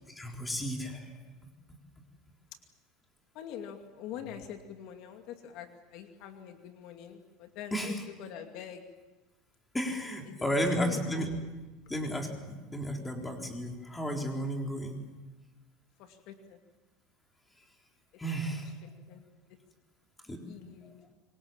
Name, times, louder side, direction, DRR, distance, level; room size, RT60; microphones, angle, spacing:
voice 1, 0.2-1.0 7.7-8.0 9.7-11.3 11.9-15.0 18.2-18.7 20.3-20.4, equal, 10° left, 2 dB, 3.9 m, -33 dB
voice 2, 3.3-8.8 10.3-11.3 16.0-16.6 19.1-19.3 20.4-21.0, left 9 dB, 55° left, 5 dB, 2.4 m, -44 dB
26.5 x 24.5 x 7.3 m, 1.2 s
supercardioid pair, 150°, 0 cm